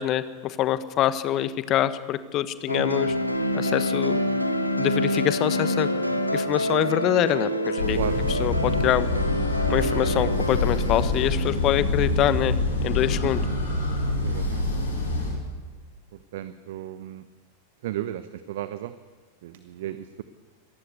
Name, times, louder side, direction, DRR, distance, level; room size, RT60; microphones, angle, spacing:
voice 1, 0.0-3.1 3.5-4.2 4.8-5.9 6.3-8.0 8.3-9.1 9.7-12.5 12.8-13.4, left 12 dB, 35° left, 14 dB, 1.3 m, -25 dB
sound 1, 2.7-14.8, equal, 90° left, 1.8 m, -28 dB
sound 2, 7.8-15.3, left 2 dB, 70° left, 6.8 m, -26 dB
voice 2, 13.2-13.6 14.2-14.6 16.3-17.2 17.8-18.9 19.4-20.2, right 12 dB, 55° right, 13 dB, 1.0 m, -34 dB
26.0 x 18.0 x 8.3 m, 1.5 s
figure-of-eight pair, 90°, 0 cm